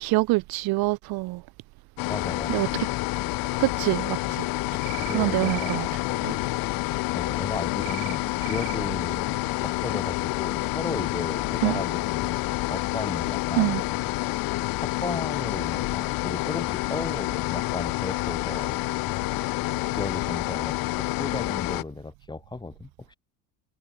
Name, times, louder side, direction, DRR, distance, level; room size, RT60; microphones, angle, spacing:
voice 1, 0.0-1.4 2.5-2.7 3.6-4.5 5.1-5.9 6.2-6.4 11.6-11.8 13.6-13.8, right 22 dB, 60° right, 0.5 m, -25 dB
sound 1, 2.0-21.8, left 21 dB, 55° left, 0.5 m, -28 dB
voice 2, 2.1-2.7 5.0-6.2 6.6-6.8 7.1-14.4 14.8-18.8 19.9-23.1, left 3 dB, 10° left, 0.8 m, -36 dB
sound 2, 4.8-5.2 5.4-5.8 7.8-8.2 8.4-8.8, right 32 dB, 80° right, 1.8 m, -38 dB
supercardioid pair, 110°, 44 cm